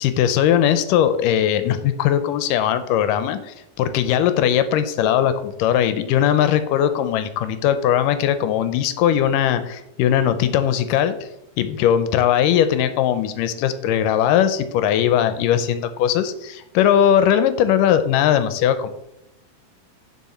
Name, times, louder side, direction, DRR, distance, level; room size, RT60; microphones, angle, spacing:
voice 1, 0.0-11.2 11.6-18.9, left 10 dB, 80° left, 11 dB, 2.1 m, -19 dB
9.5 x 4.9 x 4.2 m, 0.83 s
omnidirectional pair, 4.1 m